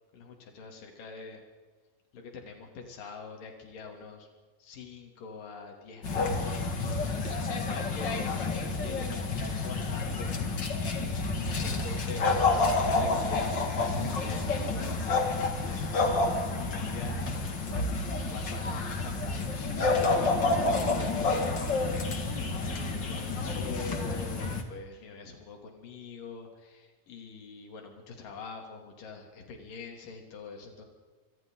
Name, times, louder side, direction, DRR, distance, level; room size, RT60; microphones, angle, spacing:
voice 1, 0.1-1.4 2.1-4.3 4.6-8.2 8.5-9.1 9.4-10.6 11.6-15.0 15.6-16.1 16.5-17.9 18.3-21.7 22.3-30.9, left 4 dB, 75° left, 2 dB, 4.4 m, -45 dB
sound 1, 6.0-24.6, left 3 dB, 35° left, 2.4 m, -29 dB
27.5 x 25.5 x 3.9 m, 1.3 s
omnidirectional pair, 3.8 m